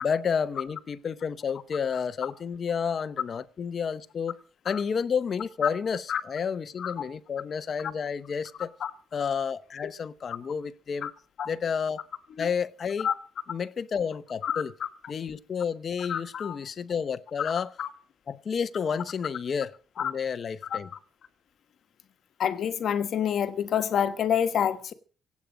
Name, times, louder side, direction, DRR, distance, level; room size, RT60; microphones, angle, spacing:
voice 1, 0.0-4.4 4.6-8.7 9.1-11.1 11.5-12.0 12.4-13.1 13.5-14.7 15.1-17.7 18.3-20.9, left 6 dB, 40° left, 0.8 m, -30 dB
voice 2, 16.1-16.6 17.4-17.5 17.8-17.9 20.0-20.1 22.4-24.9, left 9 dB, 55° left, 1.3 m, -27 dB
25.0 x 8.4 x 5.1 m
cardioid pair, 155°, 0 cm